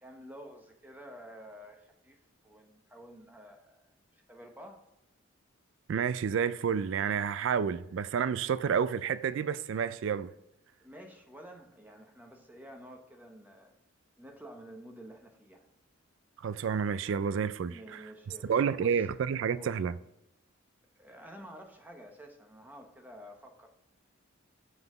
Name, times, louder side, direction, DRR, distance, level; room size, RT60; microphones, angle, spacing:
voice 1, 0.0-4.8 10.8-13.7 14.2-15.6 17.7-19.1 19.5-19.7 21.0-23.7, equal, 10° right, 0.9 m, -50 dB
voice 2, 5.9-10.3 16.4-17.7 18.5-19.9, right 7 dB, 65° right, 0.3 m, -29 dB
5.9 x 5.5 x 4.9 m
head